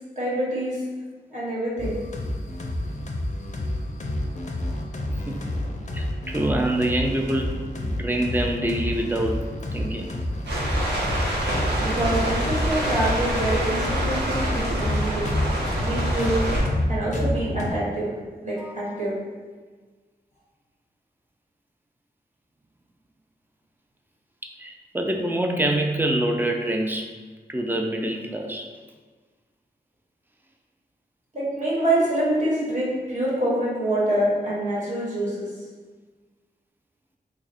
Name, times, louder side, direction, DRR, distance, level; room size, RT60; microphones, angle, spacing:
voice 1, 0.2-0.8 1.3-2.0 11.8-15.2 15.8-16.4 16.9-18.1 18.4-19.1 31.3-35.5, right 1 dB, 45° right, -8 dB, 1.4 m, -26 dB
sound 1, 1.8-17.7, left 1 dB, 45° left, 0.5 m, -29 dB
voice 2, 5.9-9.5 9.7-10.1 18.6-18.9 24.6-27.1 27.5-28.7, right 1 dB, 10° right, 2 dB, 0.4 m, -26 dB
sound 2, 10.5-16.6, right 1 dB, 85° right, 1.0 m, -26 dB
3.2 x 2.3 x 4.1 m, 1.4 s
wide cardioid pair, 90°, 17 cm